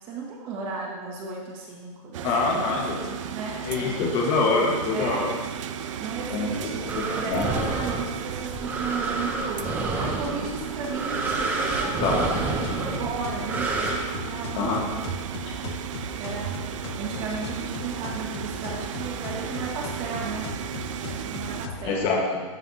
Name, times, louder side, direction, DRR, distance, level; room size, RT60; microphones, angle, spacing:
voice 1, 0.0-4.0 4.9-5.3 5.6-15.1 16.2-16.6 17.0-20.5 21.0-22.1, right 4 dB, 30° right, -3 dB, 1.6 m, -35 dB
sound 1, 2.1-21.7, right 10 dB, 70° right, 0.4 m, -35 dB
voice 2, 2.2-3.0 3.6-5.3 6.3-7.6 12.0-12.2 14.6-14.8 21.8-22.4, left 3 dB, 30° left, -1 dB, 1.6 m, -25 dB
sound 2, 2.7-21.9, left 5 dB, 45° left, 0.8 m, -40 dB
sound 3, 6.9-13.9, right 3 dB, 10° right, 0.7 m, -29 dB
13.0 x 5.5 x 2.9 m, 1.4 s
supercardioid pair, 170°, 17 cm